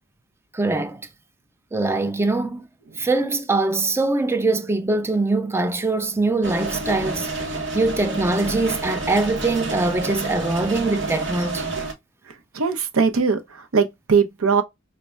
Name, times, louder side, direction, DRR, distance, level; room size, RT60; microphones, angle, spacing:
voice 1, 0.5-1.1 1.7-2.7 3.0-11.8, right 2 dB, 10° right, 0.3 m, -23 dB
sound 1, 6.4-11.9, right 3 dB, 55° right, 1.0 m, -29 dB
voice 2, 12.3-14.6, right 5 dB, 75° right, 0.6 m, -21 dB
5.2 x 2.1 x 2.3 m
head